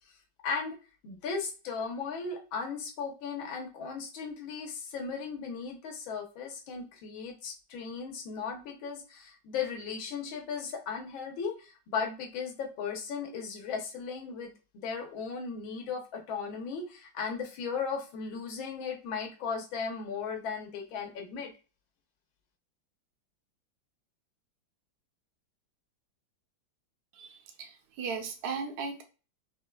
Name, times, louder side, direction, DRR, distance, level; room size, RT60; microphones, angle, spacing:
voice 1, 0.4-0.8 1.0-21.5, left 5 dB, 85° left, 3 dB, 1.7 m, -36 dB
voice 2, 27.1-29.0, right 5 dB, 60° right, 5 dB, 1.2 m, -37 dB
5.5 x 3.2 x 2.3 m, 0.33 s
omnidirectional pair, 2.1 m